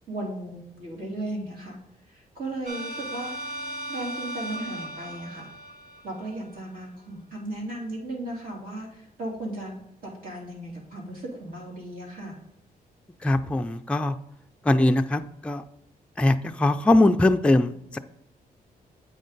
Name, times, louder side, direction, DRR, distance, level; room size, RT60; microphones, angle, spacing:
voice 1, 0.1-1.8 2.1-3.3 3.9-5.5 6.0-9.8 10.0-12.4, right 1 dB, 65° right, -2 dB, 2.7 m, -36 dB
sound 1, 2.7-6.6, right 1 dB, 45° right, 1.1 m, -37 dB
voice 2, 13.2-14.2 14.6-15.6 16.2-18.0, left 1 dB, 5° left, 6 dB, 0.3 m, -21 dB
8.2 x 5.3 x 3.9 m, 0.79 s
cardioid pair, 140°, 16 cm